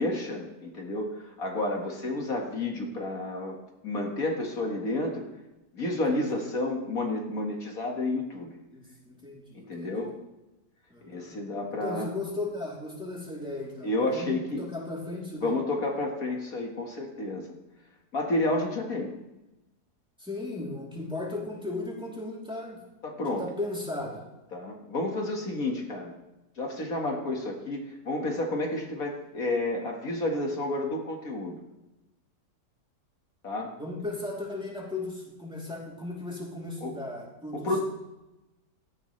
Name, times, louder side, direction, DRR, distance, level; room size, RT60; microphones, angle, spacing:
voice 1, 0.0-3.6 3.8-5.3 5.7-8.5 9.6-10.1 11.0-12.1 13.8-14.6 15.4-17.5 18.1-19.1 23.0-23.5 24.5-26.1 26.6-31.6 33.4-33.7 36.8-36.9 37.5-37.8, left 2 dB, 55° left, 1 dB, 2.2 m, -30 dB
voice 2, 5.9-6.2 8.7-9.9 10.9-11.4 11.7-15.6 20.2-22.8 23.3-24.2 33.7-37.8, left 2 dB, 5° right, -4 dB, 3.1 m, -36 dB
17.0 x 13.0 x 3.3 m, 1.0 s
omnidirectional pair, 1.8 m